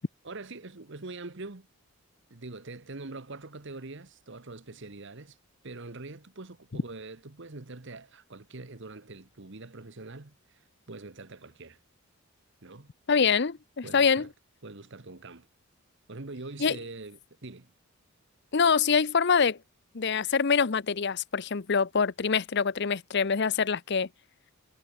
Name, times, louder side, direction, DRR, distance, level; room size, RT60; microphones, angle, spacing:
voice 1, 0.2-1.7 2.3-5.4 5.6-11.8 12.6-12.9 13.8-14.3 14.6-15.5 16.1-17.7, right 3 dB, 55° right, 1.2 m, -43 dB
voice 2, 13.1-14.3 16.6-16.8 18.5-19.6 19.9-24.1, left 6 dB, 50° left, 0.7 m, -25 dB
head